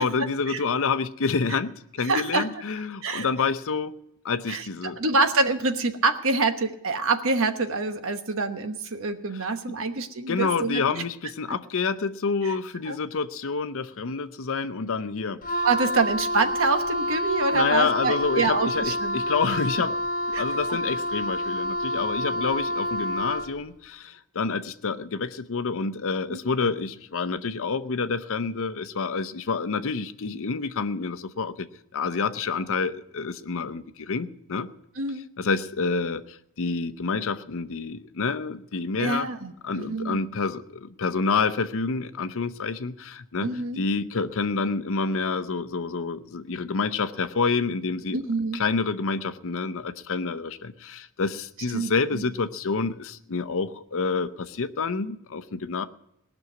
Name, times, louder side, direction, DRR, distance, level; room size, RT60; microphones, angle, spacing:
voice 1, 0.0-3.9 4.2-5.0 9.7-9.8 10.3-15.6 17.5-20.0 20.3-31.7 31.9-34.7 35.4-39.3 39.6-43.5 43.8-48.2 48.5-55.8, left 4 dB, 65° left, 12 dB, 0.7 m, -28 dB
voice 2, 2.0-2.4 3.0-3.3 4.5-4.7 5.0-11.0 12.4-12.6 12.9-13.0 15.6-19.2 20.3-20.4 26.3-26.4 35.0-35.3 39.0-40.2 43.4-43.8 48.1-48.6 51.7-52.3, right 3 dB, 65° right, 7 dB, 1.1 m, -26 dB
Wind instrument woodwind instrument, 15.4-23.6, equal, 40° left, 1.3 m, -28 dB
18.5 x 6.2 x 9.2 m, 0.82 s
head